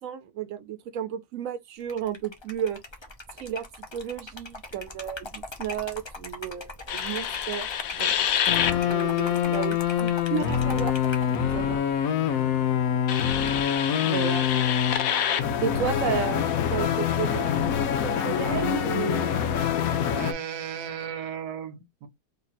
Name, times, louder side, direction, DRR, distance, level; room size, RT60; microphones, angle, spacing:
voice 1, 0.0-2.8 3.4-3.7 3.9-8.1 8.8-10.9 11.2-11.8 14.0-14.5 15.6-16.4 16.7-17.5 17.9-19.4, right 9 dB, 70° right, 1.0 m, -33 dB
Liquid, 1.8-11.3, left 2 dB, 30° left, 0.5 m, -41 dB
sound 1, 6.9-20.3, left 9 dB, 70° left, 1.1 m, -25 dB
voice 2, 8.6-9.0 12.2-12.5 15.7-15.9 20.1-22.1, right 8 dB, 85° right, 1.3 m, -36 dB
3.3 x 2.7 x 4.1 m
omnidirectional pair, 1.6 m